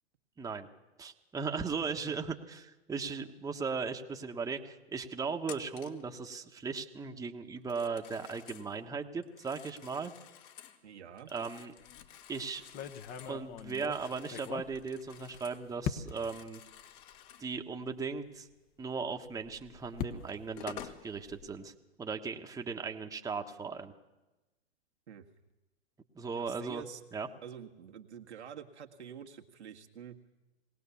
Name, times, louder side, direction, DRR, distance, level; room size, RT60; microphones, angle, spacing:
voice 1, 0.4-0.7 1.0-10.1 11.3-11.7 12.3-12.6 13.3-16.6 17.4-18.5 18.8-21.7 22.0-23.9 26.1-26.8 27.1-27.3, right 5 dB, 10° right, 4 dB, 1.3 m, -37 dB
Telephone, 5.4-6.1 7.6-8.7 9.2-10.8 11.2-15.7 16.0-17.5 19.6-19.7 20.3-21.0, left 10 dB, 50° left, 2.1 m, -51 dB
voice 2, 10.8-11.3 25.1-25.3 26.4-27.0 27.4-30.2, right 8 dB, 75° right, 4 dB, 1.8 m, -47 dB
sound 1, 11.8-12.1 12.6-15.4 15.8-16.4 17.1-17.2 17.5-17.6 19.3-21.6, left 8 dB, 25° left, 1.1 m, -41 dB
20.5 x 18.0 x 7.1 m, 1.0 s
hypercardioid pair, 115°, 34 cm